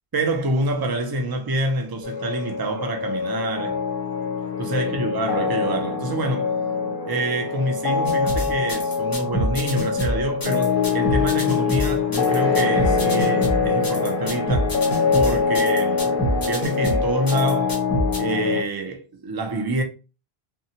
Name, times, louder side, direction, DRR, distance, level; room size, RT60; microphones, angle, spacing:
voice 1, 0.1-3.8 4.6-6.5 7.1-14.8 15.1-16.2 16.5-17.8 18.2-19.8, right 2 dB, 35° right, 0.3 m, -27 dB
sound 1, 2.0-18.6, left 5 dB, 60° left, 0.7 m, -24 dB
sound 2, 8.0-18.2, equal, 25° left, 0.6 m, -26 dB
2.7 x 2.2 x 2.7 m
omnidirectional pair, 1.0 m